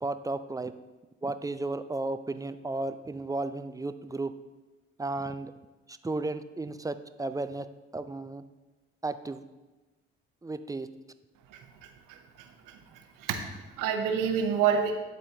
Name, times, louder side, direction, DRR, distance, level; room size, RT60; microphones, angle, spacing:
voice 1, 0.0-0.7 1.2-4.3 5.0-5.5 5.9-7.7 7.9-8.4 9.0-9.4 10.4-10.9, right 2 dB, 10° right, 11 dB, 0.3 m, -34 dB
voice 2, 11.5-14.9, right 7 dB, 75° right, 6 dB, 0.9 m, -30 dB
11.5 x 4.2 x 2.8 m, 1.1 s
hypercardioid pair, 50°, 32 cm